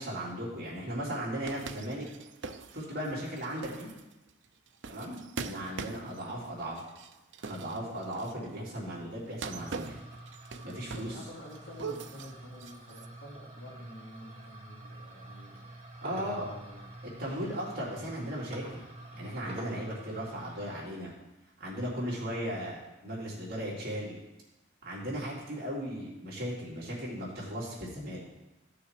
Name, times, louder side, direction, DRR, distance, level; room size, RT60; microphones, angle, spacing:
voice 1, 0.0-2.0 2.7-3.9 4.9-6.8 7.4-10.0 10.6-11.1 16.0-16.5 17.2-18.9 19.1-21.1 21.6-24.2 24.8-28.2, equal, 45° right, -5 dB, 3.5 m, -37 dB
sound 1, 1.4-8.5 9.3-11.3 11.5-13.1, right 5 dB, 65° right, 0.6 m, -43 dB
sound 2, 9.6-20.9, right 1 dB, 30° right, 1.5 m, -47 dB
voice 2, 10.9-15.6 16.1-16.9, equal, 60° left, -4 dB, 3.2 m, -48 dB
15.0 x 6.8 x 4.9 m, 0.99 s
head